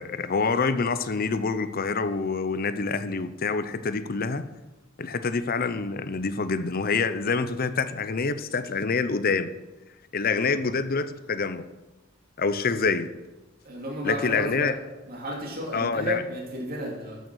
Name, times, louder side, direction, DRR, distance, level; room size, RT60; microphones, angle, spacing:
voice 1, 0.0-4.5 5.0-9.5 10.1-11.6 12.4-13.1 14.0-14.7 15.7-16.2, left 4 dB, 45° left, 13 dB, 0.7 m, -26 dB
voice 2, 10.3-10.6 13.6-17.2, equal, 50° right, -2 dB, 2.8 m, -33 dB
13.0 x 6.8 x 6.3 m, 1.1 s
head